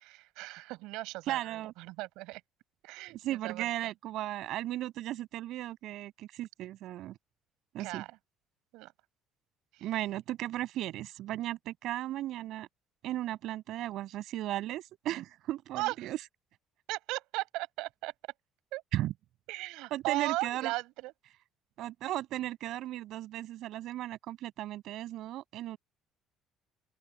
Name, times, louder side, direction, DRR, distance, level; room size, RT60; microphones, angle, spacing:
voice 1, 0.0-2.4 2.8-3.7 7.8-8.2 8.7-8.9 9.7-9.9 15.7-16.1 16.9-18.1 18.7-18.8 19.5-21.1, right 20 dB, 85° right, 6.7 m, -37 dB
voice 2, 1.3-1.7 3.2-7.2 7.7-8.0 9.8-12.7 13.0-16.2 18.9-19.1 19.9-20.7 21.8-25.8, right 14 dB, 60° right, 6.2 m, -36 dB
open air
cardioid pair, 150°, 0 cm